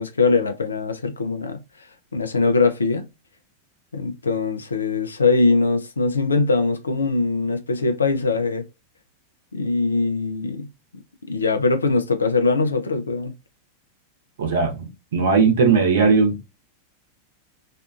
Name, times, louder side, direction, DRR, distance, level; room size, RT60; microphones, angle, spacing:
voice 1, 0.0-1.6 2.1-3.1 3.9-8.7 9.5-10.7 11.2-13.3, left 3 dB, 75° left, 0.4 m, -21 dB
voice 2, 14.4-16.4, right 5 dB, 60° right, 0.8 m, -18 dB
2.5 x 2.3 x 2.3 m
figure-of-eight pair, 90°, 0 cm